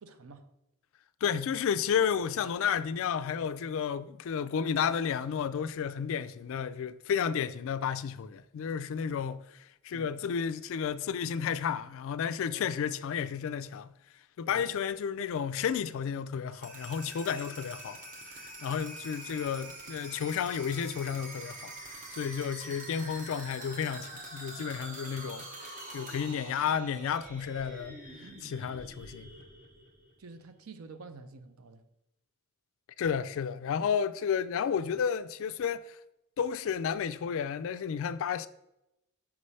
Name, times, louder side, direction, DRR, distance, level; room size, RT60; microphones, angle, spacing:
voice 1, 0.0-0.5 9.1-9.2 9.9-10.2 12.5-12.8 14.5-14.7 30.2-31.8, right 3 dB, 65° right, 0.5 m, -49 dB
voice 2, 1.2-13.9 14.4-18.0 18.3-21.7 22.1-29.3 33.0-36.0 36.4-38.5, left 7 dB, 60° left, 0.3 m, -32 dB
sound 1, 16.5-30.3, right 2 dB, 35° right, 0.9 m, -45 dB
5.9 x 3.2 x 5.4 m
head